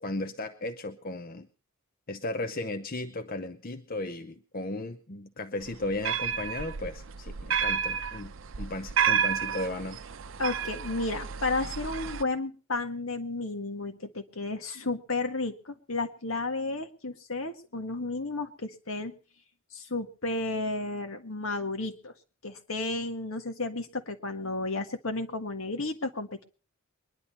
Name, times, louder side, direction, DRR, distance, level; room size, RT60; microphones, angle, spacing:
voice 1, 0.0-1.5 2.1-8.3 8.6-10.0, left 2 dB, 40° left, 7 dB, 0.7 m, -35 dB
sound 1, 5.7-12.2, right 7 dB, 65° right, 0.6 m, -31 dB
voice 2, 10.4-19.2 19.7-22.1 22.4-26.5, left 2 dB, 70° left, 6 dB, 1.7 m, -32 dB
22.5 x 11.0 x 4.2 m, 0.37 s
head